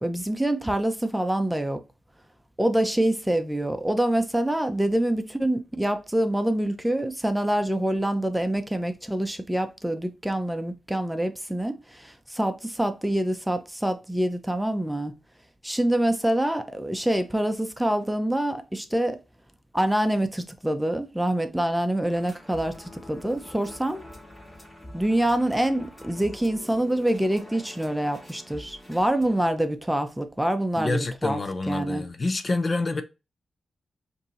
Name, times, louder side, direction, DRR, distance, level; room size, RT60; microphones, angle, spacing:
voice 1, 0.0-1.8 2.6-15.1 15.6-19.2 19.7-24.0 24.9-31.4 31.7-32.0, right 1 dB, 5° right, 0.7 m, -26 dB
sound 1, 22.1-29.5, left 1 dB, 20° left, 2.2 m, -45 dB
voice 2, 30.8-33.0, left 3 dB, 45° left, 0.6 m, -27 dB
5.1 x 2.7 x 3.1 m
cardioid pair, 55°, 0 cm